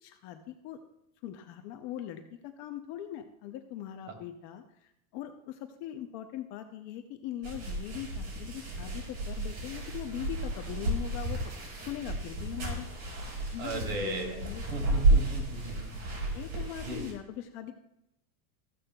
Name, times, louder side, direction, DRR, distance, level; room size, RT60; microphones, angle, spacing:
voice 1, 0.0-0.8 1.2-11.4 11.9-12.9 13.5-14.8 16.2-17.7, left 11 dB, 30° left, 6 dB, 0.4 m, -41 dB
sound 1, 7.4-17.1, right 2 dB, 85° right, 4.8 m, -32 dB
voice 2, 13.6-14.4 14.7-16.2 16.8-17.0, right 2 dB, 65° right, 2 dB, 3.2 m, -36 dB
14.5 x 12.0 x 2.2 m, 0.82 s
supercardioid pair, 160°, 45 cm